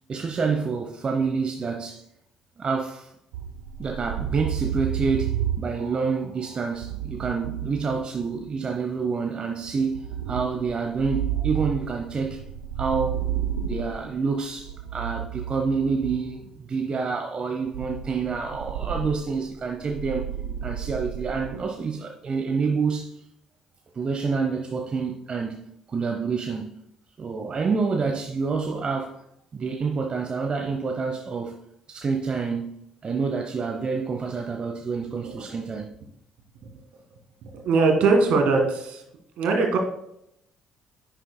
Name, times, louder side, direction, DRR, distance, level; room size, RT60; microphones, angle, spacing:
voice 1, 0.1-2.0 2.6-3.1 3.8-12.4 12.8-13.2 13.6-20.3 20.6-23.2 23.9-26.7 27.2-29.2 29.5-31.6 31.9-32.7 33.0-35.9, right 5 dB, 40° right, 0.9 m, -28 dB
sound 1, 3.3-8.5 9.7-16.4 17.7-21.6, right 10 dB, 80° right, 0.7 m, -32 dB
voice 2, 35.2-35.6 37.4-39.0 39.4-39.8, right 4 dB, 65° right, 1.8 m, -21 dB
10.5 x 7.5 x 2.2 m
hypercardioid pair, 50°, 2 cm